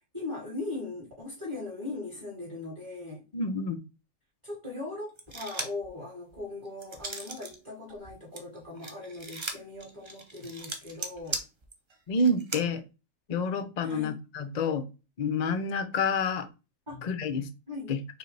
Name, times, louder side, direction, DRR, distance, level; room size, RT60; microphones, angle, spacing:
voice 1, 0.1-3.2 4.4-11.4 13.8-14.2 16.9-17.1 17.7-17.9, left 3 dB, 20° right, 2.1 m, -39 dB
voice 2, 3.3-3.8 12.1-12.8 13.3-14.9 15.2-16.5 17.0-17.5 17.9-18.0, left 3 dB, 55° left, 0.4 m, -28 dB
sound 1, 5.2-5.9 6.3-7.6 7.9-12.6, right 3 dB, 40° right, 0.4 m, -38 dB
5.1 x 3.2 x 3.2 m
omnidirectional pair, 1.4 m